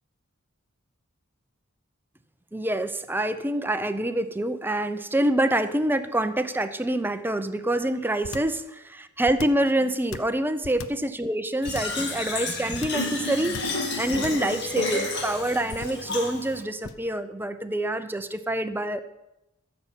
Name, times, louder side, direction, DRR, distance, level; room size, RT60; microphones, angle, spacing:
voice 1, 2.5-13.6 14.0-19.0, right 1 dB, 10° right, 10 dB, 0.7 m, -26 dB
sound 1, 8.2-8.6 9.2-9.7 10.1-11.1 11.7-12.0 12.7-13.1 13.5-13.8 14.1-14.5 15.7-16.1 16.8-17.1, left 4 dB, 70° left, 0.7 m, -37 dB
Fill (with liquid), 11.6-16.6, left 2 dB, 55° left, 2.0 m, -31 dB
14.0 x 6.6 x 7.4 m, 0.93 s
head